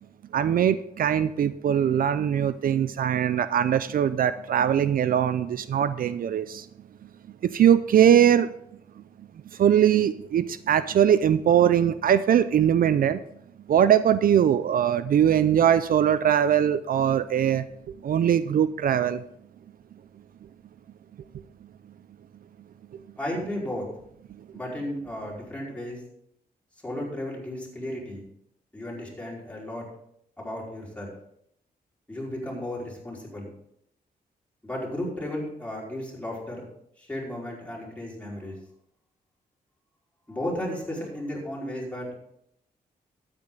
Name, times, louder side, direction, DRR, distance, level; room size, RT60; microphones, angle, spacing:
voice 1, 0.3-6.7 7.4-8.5 9.5-13.2 13.7-17.6 18.0-19.2, right 9 dB, 65° right, 14 dB, 0.5 m, -21 dB
voice 2, 23.2-23.9 24.5-26.0 26.8-28.2 28.7-29.8 30.4-31.1 32.1-33.5 34.6-36.6 37.0-38.6 40.3-42.1, left 1 dB, 10° left, -4 dB, 4.8 m, -34 dB
12.5 x 8.8 x 3.9 m, 0.72 s
cardioid pair, 85°, 16 cm